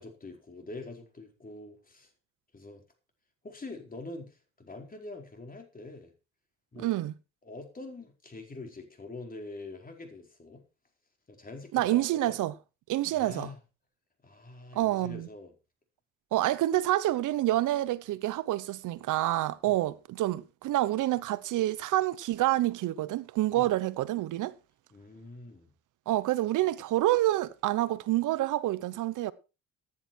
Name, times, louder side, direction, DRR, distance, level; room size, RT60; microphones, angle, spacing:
voice 1, 0.0-2.1 2.5-2.8 3.4-6.1 6.7-6.9 7.4-10.6 11.3-12.3 13.1-13.6 14.2-15.5 19.6-19.9 23.5-23.8 24.9-25.7, left 2 dB, 30° left, 4.7 m, -45 dB
voice 2, 6.8-7.1 11.7-12.5 12.9-13.5 14.7-15.3 16.3-24.5 26.1-29.3, right 15 dB, 85° right, 1.0 m, -28 dB
15.0 x 10.0 x 4.4 m
cardioid pair, 90°, 30 cm